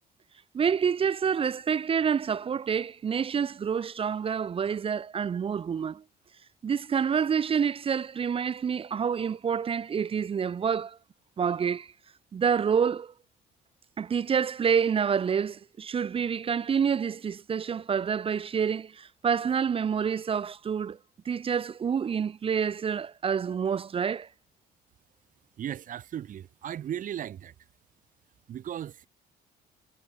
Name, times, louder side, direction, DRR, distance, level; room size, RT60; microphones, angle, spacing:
voice 1, 0.5-6.0 6.6-11.0 11.4-11.9 12.3-13.1 14.0-21.0 21.3-24.3, right 7 dB, 35° right, 0.7 m, -28 dB
voice 2, 25.6-27.5 28.5-29.1, right 10 dB, 50° right, 1.7 m, -36 dB
cardioid pair, 110°, 17 cm